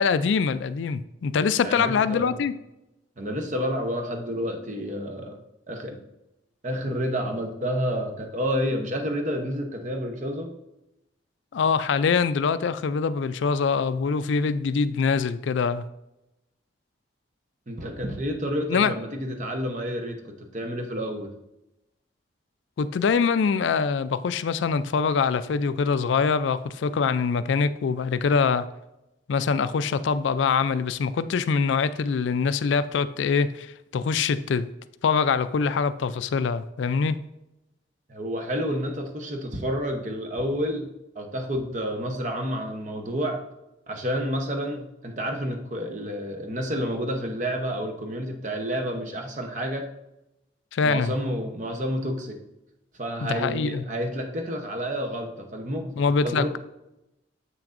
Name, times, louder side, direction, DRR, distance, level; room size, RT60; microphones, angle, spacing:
voice 1, 0.0-2.5 11.5-15.8 18.7-18.9 22.8-28.7 29.3-34.7 35.0-37.2 50.7-51.1 53.2-53.8 56.0-56.6, left 5 dB, 75° left, 14 dB, 0.4 m, -24 dB
voice 2, 1.6-2.4 3.2-5.4 5.7-6.0 6.6-10.5 17.7-21.3 38.1-40.9 41.1-43.4 43.9-49.9 50.8-52.4 53.0-55.9 56.2-56.5, equal, 40° right, 4 dB, 0.9 m, -29 dB
7.6 x 6.0 x 2.5 m, 0.90 s
head